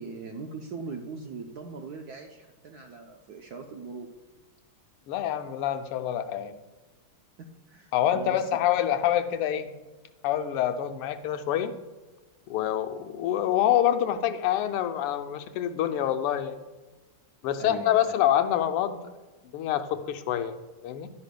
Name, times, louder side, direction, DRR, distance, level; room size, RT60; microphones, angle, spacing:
voice 1, 0.0-4.1 7.4-8.6 17.6-18.0, right 4 dB, 70° right, 3 dB, 0.9 m, -40 dB
voice 2, 5.1-6.5 7.9-9.7 10.2-11.7 12.5-16.6 17.4-19.0 19.5-20.6 20.8-21.1, left 11 dB, 90° left, 9 dB, 1.6 m, -26 dB
11.0 x 9.6 x 2.2 m, 1.2 s
omnidirectional pair, 2.4 m